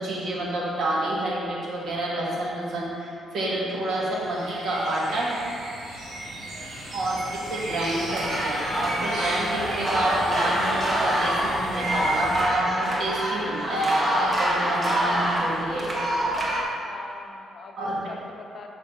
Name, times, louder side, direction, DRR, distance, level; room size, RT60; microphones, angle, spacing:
voice 1, 0.0-5.4 6.9-7.2 7.5-15.9 17.8-18.0, right 1 dB, 65° right, -4 dB, 1.5 m, -28 dB
sound 1, 3.9-12.4, right 2 dB, 80° right, 1.4 m, -35 dB
voice 2, 7.0-7.4 14.9-15.1 16.8-18.7, left 4 dB, 45° left, 3 dB, 0.6 m, -44 dB
sound 2, 8.1-16.6, equal, 25° right, 0.9 m, -26 dB
5.4 x 4.7 x 5.5 m, 2.6 s
cardioid pair, 155°, 0 cm